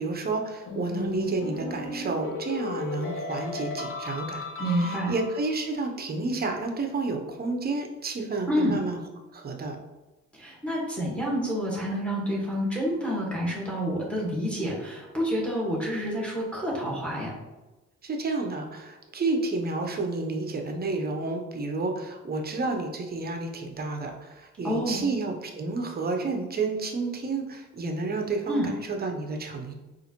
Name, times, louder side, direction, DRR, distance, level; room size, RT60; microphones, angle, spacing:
voice 1, 0.0-9.0 9.3-9.8 18.0-29.7, right 3 dB, 30° right, 3 dB, 0.6 m, -30 dB
sound 1, 0.7-5.6, left 3 dB, 45° left, 0.8 m, -35 dB
voice 2, 4.6-5.1 8.5-8.8 10.3-17.3 24.6-25.1 28.5-28.7, equal, 5° left, -4 dB, 1.3 m, -28 dB
4.0 x 2.5 x 2.9 m, 1.1 s
cardioid pair, 90°, 30 cm